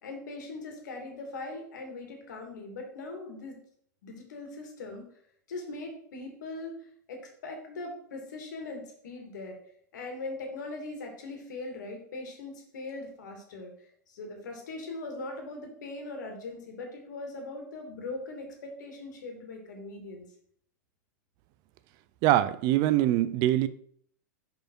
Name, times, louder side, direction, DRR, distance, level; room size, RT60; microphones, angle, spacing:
voice 1, 0.0-3.6 4.0-5.0 5.5-6.8 7.1-9.6 9.9-20.3, left 2 dB, 80° left, 1.9 m, -40 dB
voice 2, 22.2-23.7, right 14 dB, 45° right, 0.4 m, -23 dB
5.1 x 4.6 x 4.5 m
hypercardioid pair, 125°, 10 cm